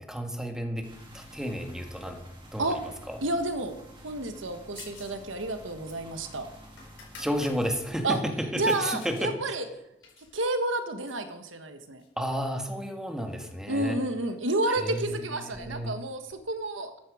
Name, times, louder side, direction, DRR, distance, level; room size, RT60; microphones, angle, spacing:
voice 1, 0.1-0.9 1.1-2.2 2.5-2.7 3.1-3.2 7.2-8.2 8.5-9.3 12.2-14.0 14.8-15.9, equal, 5° right, 3 dB, 1.7 m, -32 dB
sound 1, 0.8-8.0, equal, 25° right, 3.1 m, -50 dB
voice 2, 3.2-3.7 4.0-6.5 8.0-8.2 8.6-9.7 10.3-12.0 13.7-17.0, right 2 dB, 90° right, 8 dB, 1.4 m, -30 dB
sound 2, 4.8-5.2 5.5-7.6 8.0-9.3 9.6-11.3 12.0-12.6 12.8-12.9 13.2-16.3, left 5 dB, 70° left, 5.0 m, -52 dB
14.0 x 10.0 x 5.0 m, 0.86 s
head